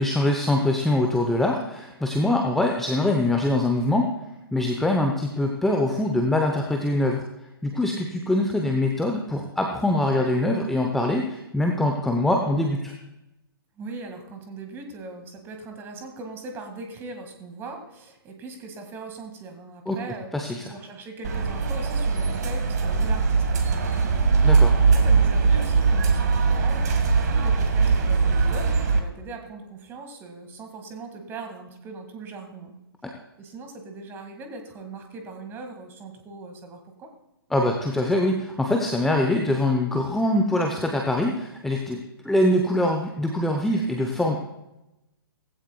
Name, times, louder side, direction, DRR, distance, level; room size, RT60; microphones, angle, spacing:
voice 1, 0.0-4.1 4.5-7.2 7.6-12.9 19.9-20.0 20.3-20.7 24.4-24.7 33.0-33.1 37.5-44.4, left 1 dB, ahead, 2 dB, 0.8 m, -23 dB
voice 2, 13.8-32.7 33.4-37.1, right 3 dB, 15° right, 5 dB, 2.1 m, -40 dB
sound 1, 21.2-29.0, right 4 dB, 45° right, 1.8 m, -21 dB
17.5 x 15.5 x 2.3 m, 0.93 s
figure-of-eight pair, 125°, 13 cm